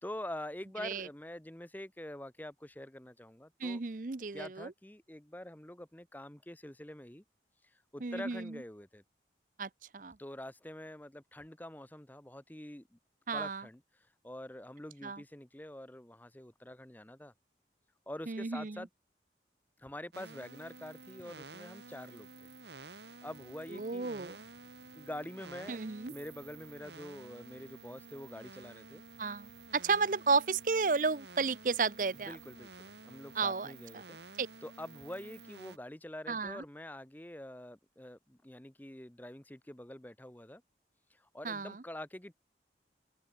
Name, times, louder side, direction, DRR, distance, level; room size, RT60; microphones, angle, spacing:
voice 1, 0.0-3.8 4.3-7.2 7.9-9.0 10.2-13.0 13.3-13.8 14.2-17.3 18.1-18.9 19.8-22.3 23.2-24.1 24.9-25.8 26.1-29.0 32.3-40.6 41.1-42.4, left 1 dB, 10° left, 0.8 m, -46 dB
voice 2, 3.6-4.7 8.0-8.6 9.6-10.2 13.3-13.6 15.0-15.2 18.3-18.9 23.7-24.4 25.7-26.1 29.2-32.4 33.3-34.0 34.4-34.5 36.3-36.6 41.4-41.8, right 4 dB, 45° right, 0.7 m, -33 dB
sound 1, 20.1-35.8, right 3 dB, 80° right, 2.7 m, -52 dB
sound 2, 23.2-33.6, equal, 60° left, 5.8 m, -72 dB
open air
head